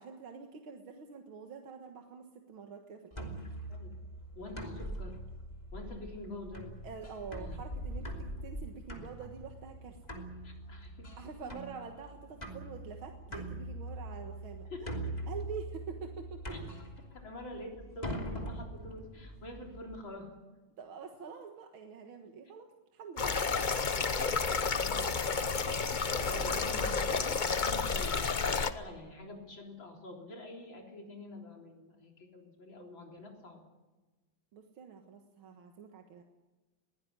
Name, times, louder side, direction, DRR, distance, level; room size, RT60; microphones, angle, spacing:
voice 1, 0.0-3.3 6.8-10.0 11.2-16.6 20.8-24.1 26.1-27.2 34.5-36.2, right 6 dB, 80° right, 4 dB, 2.3 m, -46 dB
sound 1, 3.1-20.0, right 1 dB, 20° left, 3.0 m, -42 dB
voice 2, 4.4-5.2 5.7-6.7 7.3-7.6 10.4-11.1 11.4-11.6 14.7-14.8 16.5-16.6 17.1-20.3 24.2-25.8 26.3-33.6, left 2 dB, 70° left, 1 dB, 4.3 m, -47 dB
sound 2, 23.2-28.7, left 5 dB, 40° left, 0.7 m, -31 dB
22.0 x 16.5 x 9.9 m, 1.2 s
omnidirectional pair, 2.2 m